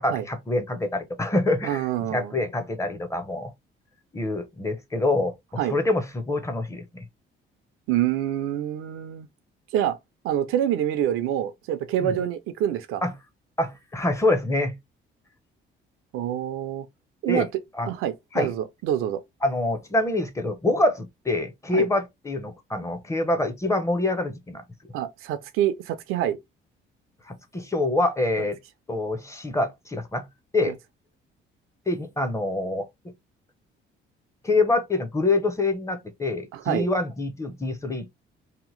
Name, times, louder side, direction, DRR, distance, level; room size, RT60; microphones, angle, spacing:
voice 1, 0.0-3.5 4.1-5.3 5.7-7.0 12.0-12.2 13.0-13.1 13.6-14.8 17.3-17.5 17.8-17.9 18.3-18.5 19.4-24.6 27.3-28.6 28.9-30.3 30.5-30.7 31.9-32.9 34.4-38.1, left 2 dB, 15° left, 0.6 m, -25 dB
voice 2, 1.6-2.3 5.6-5.7 7.9-9.3 9.7-10.0 10.2-13.0 16.1-16.9 17.2-17.5 17.9-19.2 21.7-21.9 24.9-26.4 28.4-28.5 30.7-30.8 36.5-36.9, right 11 dB, 90° right, 0.5 m, -26 dB
2.8 x 2.1 x 3.0 m
cardioid pair, 110°, 21 cm